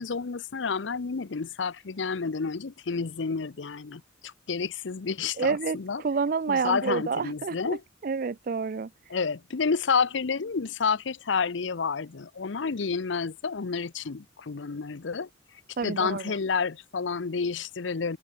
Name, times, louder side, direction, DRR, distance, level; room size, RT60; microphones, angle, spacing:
voice 1, 0.0-6.0 6.5-7.8 9.1-15.3 15.8-18.2, left 5 dB, 75° left, 0.7 m, -30 dB
voice 2, 5.4-7.8 8.0-8.9 15.8-16.4, right 5 dB, 50° right, 0.4 m, -29 dB
open air
head